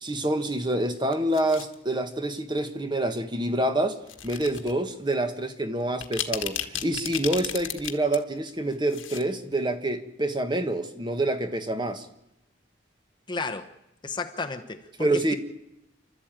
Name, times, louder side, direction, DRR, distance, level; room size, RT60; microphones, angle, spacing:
voice 1, 0.0-4.0 4.2-12.0 15.0-15.4, right 1 dB, 25° right, 1.4 m, -27 dB
sound 1, 1.0-1.7 2.6-2.8 4.0-4.7 5.1-5.2 5.8-8.2 8.5-9.2 9.5-9.6, left 11 dB, 85° left, 1.6 m, -34 dB
voice 2, 13.3-13.7 14.0-15.3, left 3 dB, 25° left, 0.9 m, -33 dB
28.0 x 12.5 x 9.0 m
head